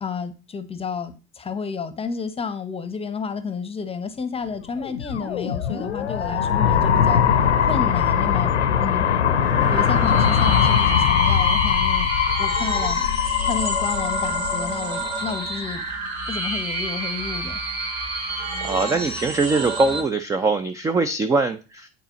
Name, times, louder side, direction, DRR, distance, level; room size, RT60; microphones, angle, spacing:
voice 1, 0.0-7.2 7.6-8.5 8.8-9.1 9.7-12.1 12.4-13.1 13.4-15.8 16.3-17.6, left 5 dB, 15° left, 0.8 m, -31 dB
sound 1, 4.8-15.7, left 8 dB, 80° left, 0.7 m, -21 dB
sound 2, 9.3-20.0, right 2 dB, 55° right, 2.0 m, -29 dB
voice 2, 18.6-21.9, right 3 dB, 10° right, 0.3 m, -22 dB
9.0 x 4.1 x 2.9 m
figure-of-eight pair, 65°, 34 cm